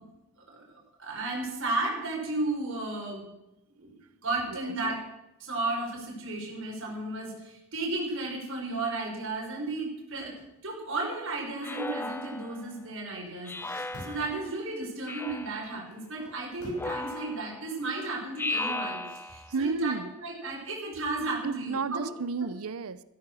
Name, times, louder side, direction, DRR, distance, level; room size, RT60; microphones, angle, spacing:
voice 1, 1.0-3.2 3.8-3.9 4.2-5.0 5.4-10.4 10.6-22.0, right 2 dB, 60° right, -1 dB, 5.8 m, -34 dB
sound 1, 10.1-10.5 13.4-14.5 15.9-17.0, left 1 dB, 80° left, 6.9 m, -47 dB
Speech synthesizer, 11.6-12.7 13.4-14.5 15.1-15.7 16.7-17.7 18.4-19.5, left 2 dB, 10° left, 0.5 m, -36 dB
voice 2, 19.5-20.1 21.4-23.0, right 4 dB, 80° right, 16 dB, 0.7 m, -32 dB
14.5 x 13.0 x 6.3 m, 0.90 s
head